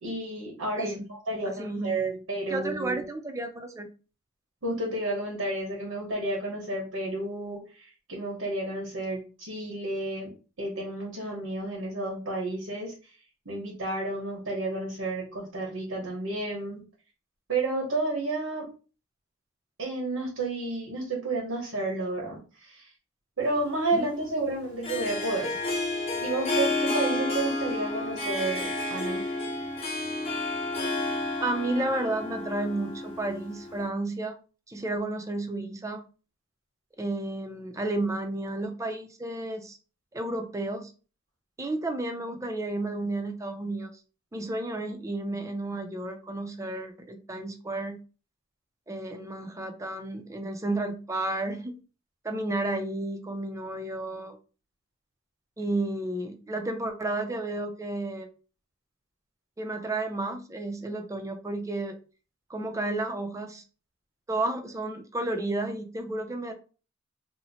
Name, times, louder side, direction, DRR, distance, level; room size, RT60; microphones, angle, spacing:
voice 1, 0.0-3.0 4.6-10.3 10.6-12.9 13.4-16.8 17.5-18.7 19.8-22.9 23.4-25.5 26.2-29.3, right 2 dB, 90° right, -3 dB, 1.2 m, -31 dB
voice 2, 0.8-1.1 1.5-1.9 2.5-3.9 23.9-24.1 31.4-34.4 34.7-36.0 37.0-39.8 40.1-40.9 41.6-43.9 44.3-48.0 48.9-51.8 52.2-54.4 55.6-58.3 59.6-62.0 62.5-63.6 64.3-66.5, right 2 dB, 15° right, 6 dB, 0.4 m, -32 dB
Harp, 23.4-33.9, left 2 dB, 30° left, 0.9 m, -31 dB
2.8 x 2.1 x 4.1 m, 0.35 s
head